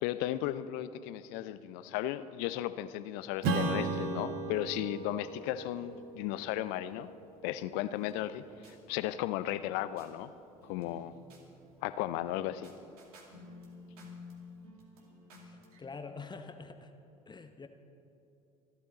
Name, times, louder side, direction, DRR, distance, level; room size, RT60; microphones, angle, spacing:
voice 1, 0.0-7.1 7.4-10.3 10.6-11.1 11.8-12.7, left 13 dB, 60° left, 14 dB, 0.7 m, -35 dB
Strum, 3.4-8.4, right 3 dB, 55° right, 1.4 m, -37 dB
sound 1, 7.8-10.1 10.6-15.8, left 3 dB, 75° right, 2.4 m, -54 dB
voice 2, 15.4-16.9 17.3-17.7, left 4 dB, 25° left, 7 dB, 0.9 m, -46 dB
26.5 x 12.0 x 4.1 m, 2.7 s
figure-of-eight pair, 65°, 19 cm